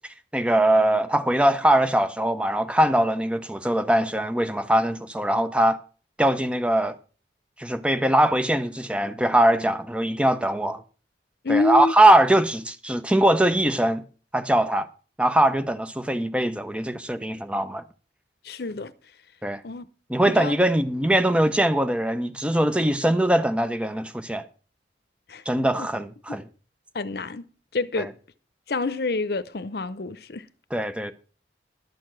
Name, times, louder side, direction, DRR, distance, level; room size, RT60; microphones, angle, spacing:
voice 1, 0.3-5.8 6.2-7.0 7.6-10.8 11.5-14.1 14.3-14.9 15.2-17.8 19.4-19.6 20.1-24.4 25.5-26.4 28.0-28.1 30.7-31.1, right 1 dB, 5° right, 0.6 m, -21 dB
voice 2, 11.4-11.9 18.4-18.9 19.6-19.9 20.2-20.5 25.3-25.4 25.8-25.9 26.3-26.4 26.9-27.5 27.7-28.1 28.7-30.5, left 3 dB, 55° left, 0.7 m, -27 dB
12.0 x 6.8 x 6.0 m
head